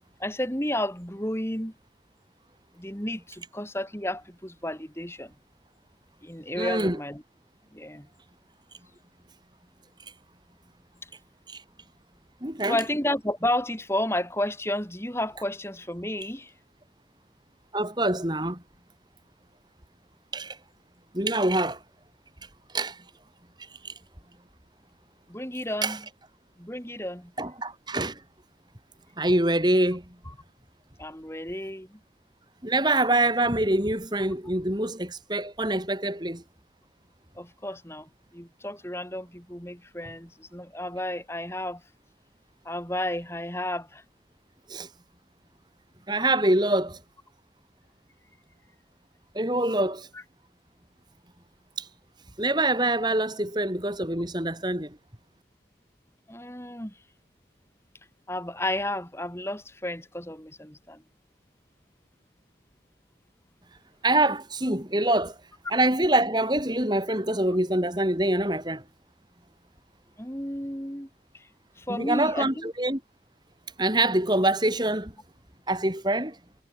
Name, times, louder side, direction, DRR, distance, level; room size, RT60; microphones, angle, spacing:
voice 1, 0.2-1.7 2.8-5.3 6.2-7.2 7.7-8.1 11.0-11.1 12.7-16.5 25.3-26.0 26.6-27.3 30.2-30.3 31.0-32.0 37.3-41.8 42.6-44.0 50.1-50.2 56.3-56.9 58.3-61.0 70.2-71.1 71.3-71.5 71.8-72.7, left 1 dB, 15° left, 6.5 m, -32 dB
voice 2, 6.6-7.0 11.5-11.6 12.4-12.8 17.7-18.6 20.3-20.6 21.1-21.8 22.7-23.0 23.6-23.9 25.8-26.0 27.4-28.2 29.2-30.0 32.6-36.4 44.7-44.9 46.1-47.0 49.3-50.1 51.8-51.9 52.4-54.9 64.0-65.4 65.7-68.8 71.9-73.0 73.8-75.1 75.7-76.4, right 1 dB, 25° right, 5.2 m, -25 dB
head